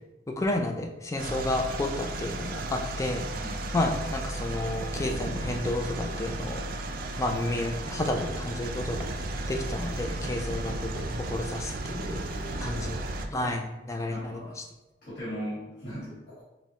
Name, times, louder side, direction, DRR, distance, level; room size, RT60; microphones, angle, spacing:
voice 1, 0.4-3.3 3.7-6.6 7.2-9.1 9.5-12.2 12.6-13.0 13.3-14.5, left 2 dB, 15° left, 4 dB, 0.4 m, -31 dB
sound 1, 1.2-13.3, right 2 dB, 55° right, 0.3 m, -34 dB
voice 2, 3.4-3.7 12.2-13.1 14.1-14.5 15.0-16.4, equal, 50° left, -9 dB, 1.4 m, -39 dB
5.5 x 2.1 x 2.8 m, 1.0 s
head